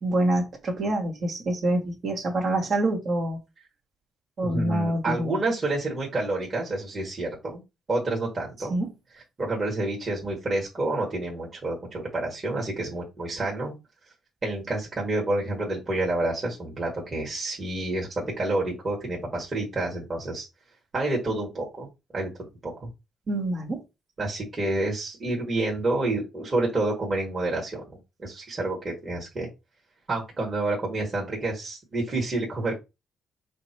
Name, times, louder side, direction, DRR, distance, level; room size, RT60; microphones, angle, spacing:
voice 1, 0.0-3.4 4.4-5.4 8.7-8.9 23.3-23.8, right 1 dB, 55° right, 1.6 m, -26 dB
voice 2, 4.4-7.6 7.9-8.8 9.4-13.7 14.4-20.5 20.9-21.9 22.1-22.3 22.6-22.9 24.2-29.5 30.1-32.8, right 2 dB, 35° right, 1.8 m, -29 dB
5.1 x 2.1 x 4.5 m
cardioid pair, 90°, 0 cm